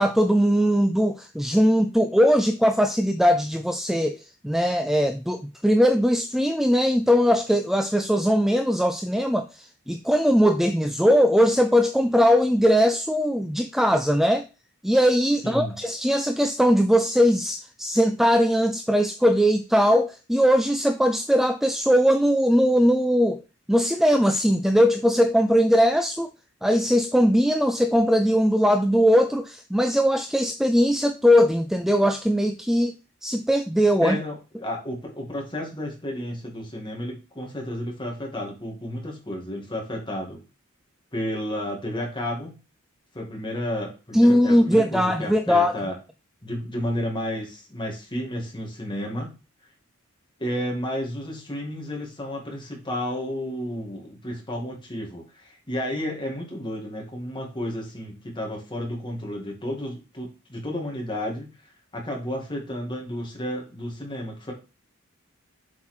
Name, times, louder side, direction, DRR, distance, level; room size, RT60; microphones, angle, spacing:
voice 1, 0.0-14.5 14.8-23.4 23.7-26.3 26.6-32.9 33.2-34.2 44.1-45.8, equal, ahead, 0.4 m, -20 dB
voice 2, 15.4-15.8 34.0-40.4 41.1-42.6 43.1-46.0 46.4-49.3 50.4-61.5 61.9-64.5, left 1 dB, 25° left, 2.2 m, -32 dB
7.5 x 4.4 x 4.4 m
head